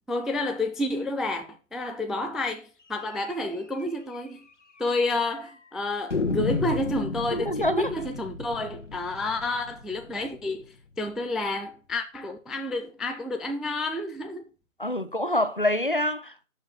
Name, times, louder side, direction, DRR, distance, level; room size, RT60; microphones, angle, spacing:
voice 1, 0.1-4.5 4.8-10.7 11.0-14.4, left 2 dB, ahead, 0.4 m, -30 dB
sound 1, 3.3-3.4 3.7-3.8 4.1-4.2 4.9-5.4 6.1-10.9, left 3 dB, 60° left, 1.5 m, -33 dB
voice 2, 7.3-7.9 14.8-16.5, left 1 dB, 40° left, 0.8 m, -26 dB
7.1 x 6.1 x 7.1 m
figure-of-eight pair, 180°, 41 cm